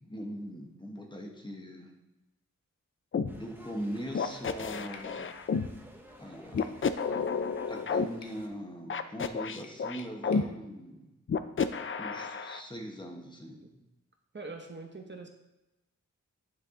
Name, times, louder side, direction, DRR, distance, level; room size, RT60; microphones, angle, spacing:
voice 1, 0.0-1.9 3.2-5.2 6.2-6.8 7.7-11.0 12.0-13.6, equal, 15° left, 1 dB, 1.2 m, -41 dB
sound 1, 3.1-3.3 4.2-5.7 6.5-8.1 8.9-10.4 11.3-12.6, left 5 dB, 45° left, 0.4 m, -31 dB
sound 2, 3.3-8.5, right 1 dB, 5° right, 1.0 m, -52 dB
sound 3, 4.9-5.2 6.6-6.8 8.2-8.4 9.6-10.5, left 4 dB, 85° left, 0.8 m, -53 dB
voice 2, 14.3-15.3, right 3 dB, 40° right, 3 dB, 0.9 m, -43 dB
9.5 x 4.7 x 3.7 m, 0.97 s
wide cardioid pair, 95°, 29 cm